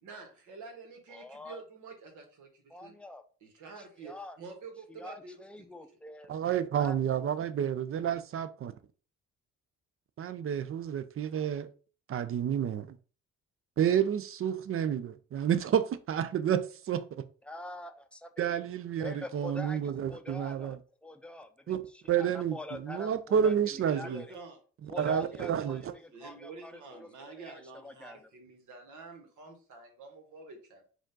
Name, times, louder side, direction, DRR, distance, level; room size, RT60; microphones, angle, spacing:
voice 1, 0.0-2.9 3.4-5.4 23.8-24.6 24.9-25.8 26.1-30.8, right 4 dB, 75° right, 1.5 m, -48 dB
voice 2, 1.1-1.6 2.7-3.2 3.8-4.4 4.9-6.3 6.8-7.0 17.4-18.6 19.0-24.3 24.9-28.3, left 2 dB, 5° left, 0.5 m, -45 dB
voice 3, 6.3-8.7 10.2-11.7 12.1-12.9 13.8-16.6 16.9-17.0 18.4-20.8 21.7-21.8 22.1-24.2 25.0-25.9, right 9 dB, 45° right, 0.5 m, -30 dB
4.9 x 2.5 x 3.8 m
cardioid pair, 90°, 30 cm